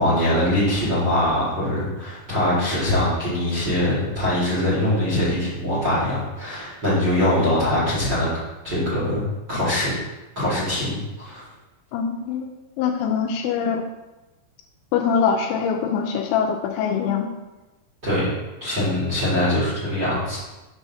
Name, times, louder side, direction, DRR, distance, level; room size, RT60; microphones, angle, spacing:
voice 1, 0.0-8.3 8.6-9.9 10.3-11.4 18.0-18.3 18.6-20.4, left 1 dB, 40° right, -11 dB, 1.7 m, -22 dB
voice 2, 11.9-12.5 12.8-13.8 14.9-17.3, left 7 dB, 85° left, 3 dB, 2.7 m, -23 dB
7.0 x 6.2 x 2.8 m, 1.1 s
omnidirectional pair, 5.3 m